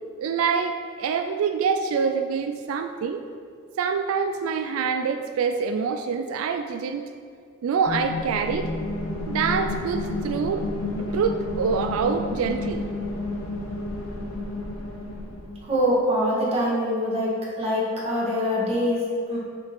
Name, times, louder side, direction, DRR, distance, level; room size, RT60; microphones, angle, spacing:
voice 1, 0.2-3.2 3.8-7.1 7.6-8.7 9.3-10.6 11.0-12.9, right 6 dB, 90° right, 7 dB, 0.3 m, -25 dB
sound 1, 7.9-15.6, left 2 dB, 85° left, 0.9 m, -31 dB
voice 2, 15.6-17.3 17.6-19.4, equal, 30° right, -6 dB, 1.6 m, -24 dB
6.0 x 5.1 x 4.3 m, 2.2 s
head